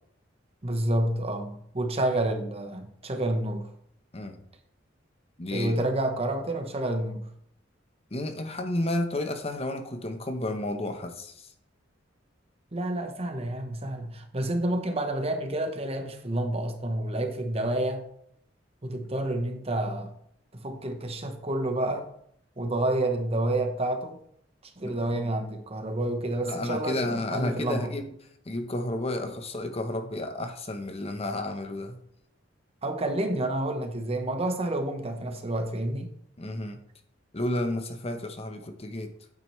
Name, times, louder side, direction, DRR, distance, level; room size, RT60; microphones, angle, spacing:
voice 1, 0.6-3.7 5.5-7.3 12.7-18.0 18.8-20.1 20.5-22.1 22.6-24.2 24.8-27.9 32.8-36.1, right 1 dB, 30° right, 1.1 m, -29 dB
voice 2, 5.4-5.8 8.1-11.5 24.8-24.9 26.4-28.1 28.4-32.0 36.4-36.8 37.3-39.2, left 1 dB, 30° left, 0.9 m, -31 dB
9.2 x 8.7 x 3.2 m
head